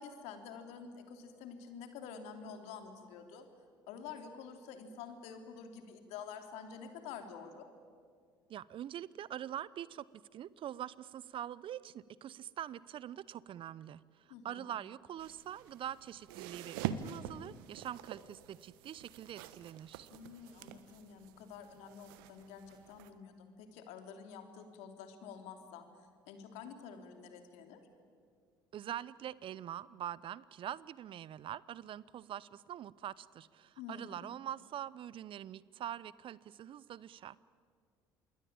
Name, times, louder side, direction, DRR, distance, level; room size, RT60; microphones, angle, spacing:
voice 1, 0.0-3.5 3.9-7.7 14.3-14.7 20.1-25.8 26.3-27.8 33.8-34.3, left 6 dB, 70° left, 6 dB, 3.1 m, -49 dB
voice 2, 8.5-20.1 28.7-37.4, right 11 dB, 50° right, 21 dB, 0.7 m, -44 dB
sound 1, 15.2-23.1, right 10 dB, 75° right, 1.2 m, -46 dB
27.0 x 21.5 x 8.8 m, 2.1 s
hypercardioid pair, 60°, 12 cm